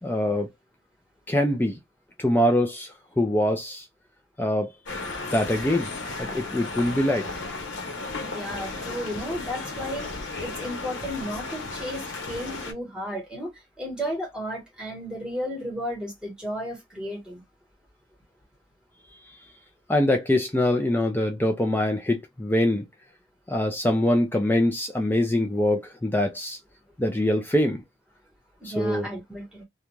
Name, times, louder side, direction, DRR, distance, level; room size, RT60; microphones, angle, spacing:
voice 1, 0.0-0.5 1.3-1.8 2.2-3.9 4.4-4.7 5.3-5.9 6.2-7.3 19.1-19.4 19.9-22.8 23.5-26.6 27.0-27.8 28.6-29.1, left 1 dB, 10° left, 0.3 m, -24 dB
sound 1, 4.9-12.7, left 3 dB, 85° left, 0.8 m, -34 dB
voice 2, 8.2-17.4 28.6-29.6, equal, 5° right, 1.2 m, -34 dB
2.4 x 2.2 x 3.0 m
head